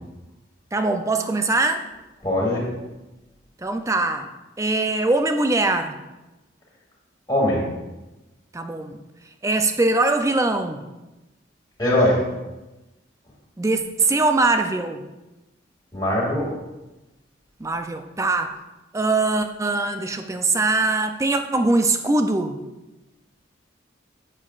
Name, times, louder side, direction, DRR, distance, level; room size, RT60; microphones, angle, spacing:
voice 1, 0.7-1.8 3.6-4.3 4.6-6.0 8.5-9.0 9.4-10.8 13.6-15.0 17.6-18.6 18.9-22.6, right 2 dB, 15° right, 7 dB, 0.4 m, -22 dB
voice 2, 2.2-2.6 7.3-7.6 11.8-12.2 15.9-16.5, left 1 dB, 20° left, -5 dB, 2.2 m, -20 dB
8.4 x 7.3 x 2.4 m, 1.1 s
head